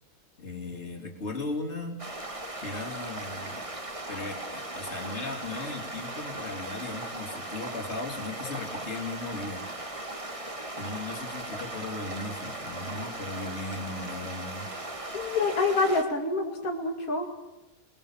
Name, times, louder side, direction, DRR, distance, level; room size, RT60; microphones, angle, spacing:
voice 1, 0.4-2.0 2.6-3.6 4.1-9.7 10.8-14.7, left 2 dB, 50° left, 2 dB, 3.6 m, -37 dB
sound 1, 2.0-16.0, right 2 dB, 25° right, 1.9 m, -38 dB
voice 2, 15.1-17.3, left 3 dB, 85° left, 1 dB, 2.8 m, -27 dB
29.0 x 21.0 x 7.4 m, 0.99 s
omnidirectional pair, 1.4 m